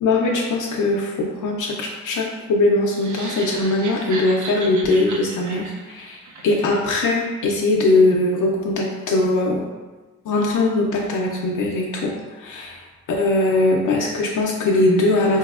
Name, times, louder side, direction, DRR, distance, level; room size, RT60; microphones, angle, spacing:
voice 1, 0.0-9.6 10.3-12.8 13.1-15.4, left 2 dB, 85° left, -1 dB, 0.5 m, -20 dB
sound 1, 2.9-7.1, right 3 dB, 75° right, 0.5 m, -35 dB
3.9 x 2.7 x 2.4 m, 1.2 s
wide cardioid pair, 110°, 30 cm